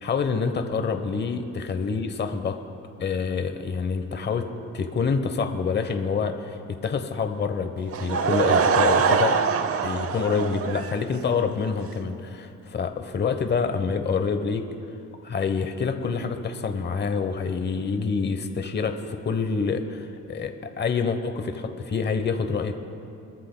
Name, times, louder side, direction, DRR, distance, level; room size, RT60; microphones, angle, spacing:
voice 1, 0.0-2.6 3.0-4.5 4.7-9.4 9.8-14.6 15.2-22.7, left 5 dB, 35° left, 7 dB, 0.9 m, -27 dB
Laughter / Crowd, 7.9-11.4, right 6 dB, 50° right, 0.7 m, -23 dB
24.0 x 13.5 x 2.2 m, 2.7 s
cardioid pair, 90°, 30 cm